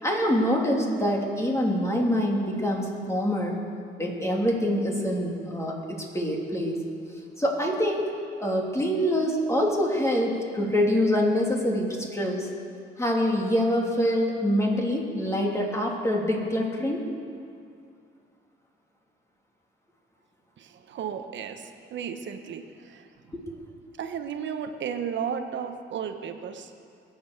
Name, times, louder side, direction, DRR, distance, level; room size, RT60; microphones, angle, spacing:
voice 1, 0.0-3.6 4.0-6.8 7.4-8.1 8.4-12.5 13.0-17.0 23.5-23.6, equal, 15° left, -1 dB, 2.8 m, -25 dB
voice 2, 20.6-23.3 24.0-26.7, right 7 dB, 65° right, 7 dB, 1.2 m, -34 dB
21.5 x 8.0 x 6.8 m, 2.3 s
cardioid pair, 90°, 20 cm